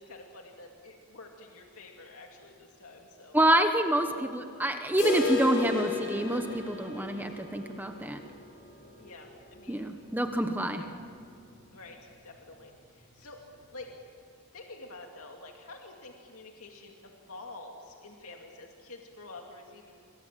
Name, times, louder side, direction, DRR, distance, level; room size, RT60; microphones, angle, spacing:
voice 1, 0.0-3.4 4.0-4.2 9.0-9.9 10.8-10.9 11.7-13.4 13.7-13.9 14.5-20.0, left 2 dB, 70° left, 1 dB, 2.5 m, -48 dB
voice 2, 3.3-8.2 9.7-10.8, right 1 dB, 10° right, 6 dB, 1.1 m, -27 dB
sound 1, 5.0-10.8 11.1-11.2 11.5-11.6 12.1-12.2 13.1-13.2, left 5 dB, 45° left, 5.7 m, -35 dB
28.5 x 24.5 x 7.6 m, 2.5 s
head